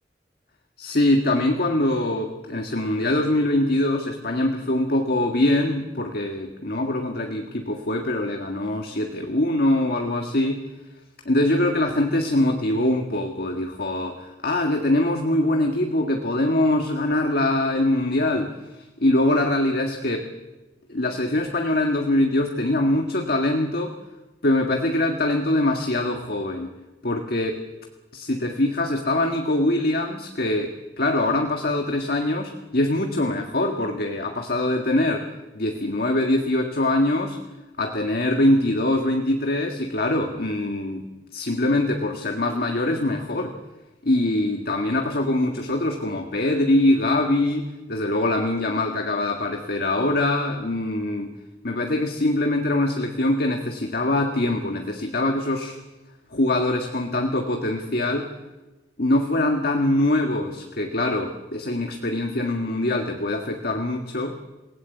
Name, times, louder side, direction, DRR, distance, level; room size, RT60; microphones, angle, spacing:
voice 1, 0.8-10.6 11.3-20.3 20.9-24.0 24.4-26.7 27.0-27.6 28.1-35.3 35.6-37.4 37.8-41.1 41.3-43.5 44.0-51.3 51.6-55.8 56.3-58.3 59.0-64.4, left 1 dB, 60° left, 3 dB, 1.8 m, -23 dB
28.0 x 17.5 x 8.4 m, 1.1 s
head